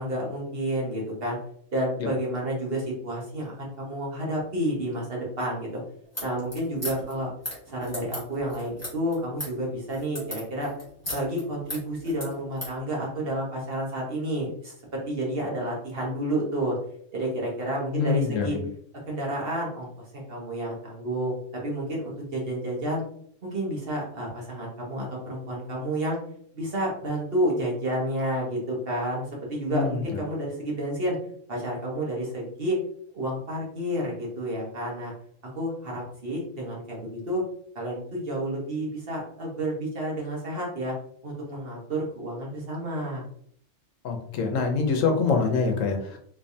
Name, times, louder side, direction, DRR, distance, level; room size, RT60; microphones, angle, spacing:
voice 1, 0.0-1.4 1.7-5.8 6.2-7.3 7.7-10.7 11.1-16.8 17.1-18.6 19.1-19.9 20.1-23.0 23.4-26.2 26.5-31.2 31.5-32.8 33.1-35.1 35.4-37.4 37.7-40.9 41.2-43.2, right 1 dB, 50° right, -2 dB, 1.2 m, -30 dB
sound 1, 6.0-12.8, equal, 10° left, 1.5 m, -37 dB
voice 2, 17.9-18.6 29.7-30.2 44.0-46.3, left 5 dB, 75° left, 4 dB, 1.0 m, -25 dB
3.3 x 3.2 x 2.7 m, 0.63 s
omnidirectional pair, 1.4 m